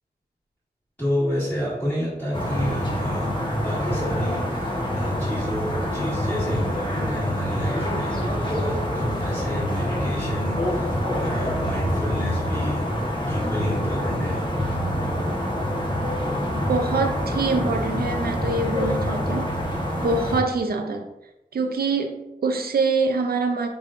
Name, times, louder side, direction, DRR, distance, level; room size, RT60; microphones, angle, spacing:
voice 1, 1.0-12.9 13.2-14.5, equal, 10° left, -11 dB, 1.5 m, -30 dB
sound 1, 2.3-20.4, equal, 30° left, 0.9 m, -26 dB
voice 2, 16.7-19.5 20.0-21.0 21.5-23.7, right 3 dB, 70° right, 4 dB, 0.5 m, -25 dB
5.2 x 3.5 x 2.5 m, 0.95 s
wide cardioid pair, 115°, 17 cm